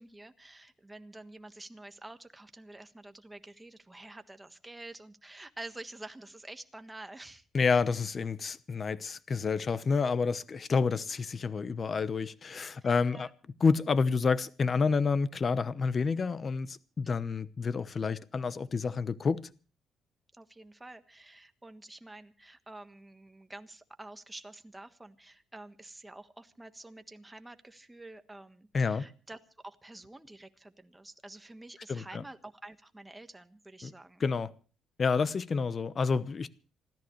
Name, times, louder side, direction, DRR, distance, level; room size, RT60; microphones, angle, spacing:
voice 1, 0.0-7.5 12.8-13.3 17.0-17.2 20.3-34.2, right 2 dB, 10° right, 1.4 m, -48 dB
voice 2, 7.5-13.3 13.6-19.5 28.7-29.1 31.9-32.2 33.8-33.9 34.2-34.5 35.0-36.5, left 5 dB, 40° left, 0.9 m, -29 dB
27.5 x 13.5 x 3.2 m
cardioid pair, 90°, 0 cm